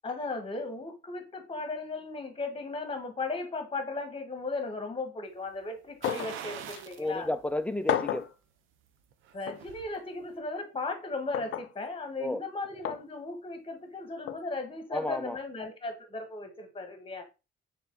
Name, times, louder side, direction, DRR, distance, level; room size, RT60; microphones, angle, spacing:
voice 1, 0.0-7.3 9.3-17.2, left 3 dB, 25° left, 1.2 m, -36 dB
sound 1, 6.0-6.4 6.7-6.8 7.9-8.3 9.5-9.6 11.3-11.7 12.8-13.0 14.3-14.4, left 11 dB, 75° left, 0.4 m, -31 dB
sound 2, 6.0-7.1 7.5-7.6 9.1-9.9 10.2-10.3, right 9 dB, 85° right, 0.5 m, -43 dB
voice 2, 7.0-8.3 12.2-12.4 14.9-15.4, left 1 dB, 5° left, 0.3 m, -31 dB
3.3 x 3.0 x 3.5 m
cardioid pair, 90°, 20 cm